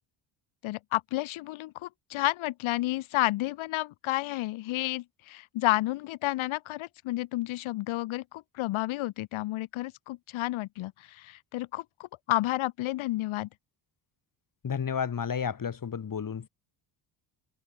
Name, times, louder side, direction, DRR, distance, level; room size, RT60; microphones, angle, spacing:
voice 1, 0.6-13.5, left 17 dB, 90° left, 3.7 m, -31 dB
voice 2, 14.6-16.5, left 7 dB, 45° left, 6.8 m, -31 dB
cardioid pair, 95°, 47 cm